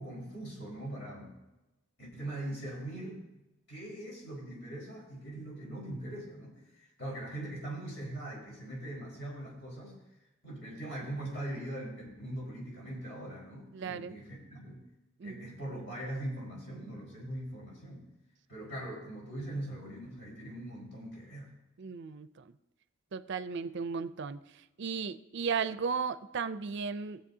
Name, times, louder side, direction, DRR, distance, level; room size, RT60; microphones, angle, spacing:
voice 1, 0.0-1.3 2.0-3.2 3.7-10.0 10.4-14.8 15.2-18.1 18.5-21.5, right 1 dB, 60° left, -3 dB, 4.6 m, -41 dB
voice 2, 13.7-14.1 15.2-15.5 21.8-22.5 23.1-27.2, right 5 dB, 55° right, 13 dB, 0.4 m, -35 dB
19.5 x 7.6 x 2.8 m, 0.99 s
head